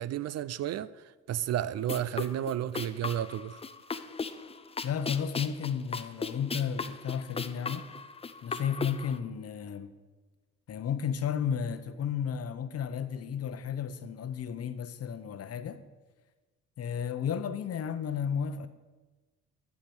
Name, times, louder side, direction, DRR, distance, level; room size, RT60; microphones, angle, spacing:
voice 1, 0.0-3.6, right 11 dB, 55° right, 0.5 m, -32 dB
sound 1, 1.8-9.2, left 4 dB, 20° left, 0.5 m, -37 dB
voice 2, 4.8-7.9 8.4-9.9 10.7-15.8 16.8-18.7, left 7 dB, 50° left, 0.8 m, -33 dB
11.5 x 4.8 x 7.1 m
cardioid pair, 90°, 30 cm